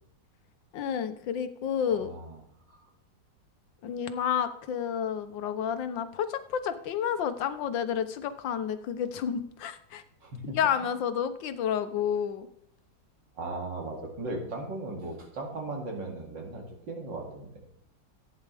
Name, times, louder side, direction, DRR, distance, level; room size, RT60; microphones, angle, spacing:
voice 1, 0.7-2.1 3.8-10.0 10.5-12.5, left 8 dB, 85° left, 10 dB, 1.5 m, -30 dB
voice 2, 2.0-2.4 2.7-2.8 10.2-10.6 13.4-17.5, right 2 dB, 75° right, 0 dB, 3.1 m, -37 dB
14.5 x 9.4 x 3.4 m, 0.71 s
omnidirectional pair, 2.0 m